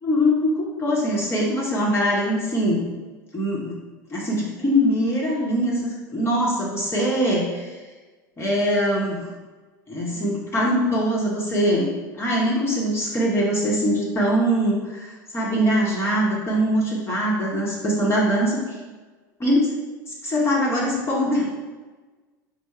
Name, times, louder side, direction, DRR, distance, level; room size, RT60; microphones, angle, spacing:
voice 1, 0.0-2.9 3.3-3.8 4.1-7.8 8.4-9.3 9.9-18.8 19.4-19.7 20.1-21.5, equal, 25° left, -4 dB, 1.0 m, -22 dB
4.4 x 2.0 x 4.5 m, 1.3 s
hypercardioid pair, 85°, 11 cm